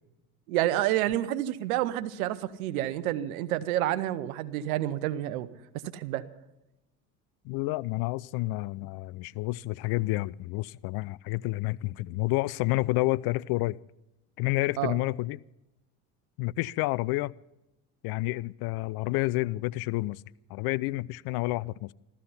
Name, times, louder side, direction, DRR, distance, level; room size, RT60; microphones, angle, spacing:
voice 1, 0.5-5.5 5.9-6.2 14.8-15.0, right 14 dB, 80° right, 1.0 m, -29 dB
voice 2, 7.4-13.8 14.4-15.4 16.4-17.3 18.0-20.2 20.5-21.9, left 20 dB, 60° left, 0.5 m, -29 dB
15.0 x 14.0 x 5.6 m
hypercardioid pair, 70°, 42 cm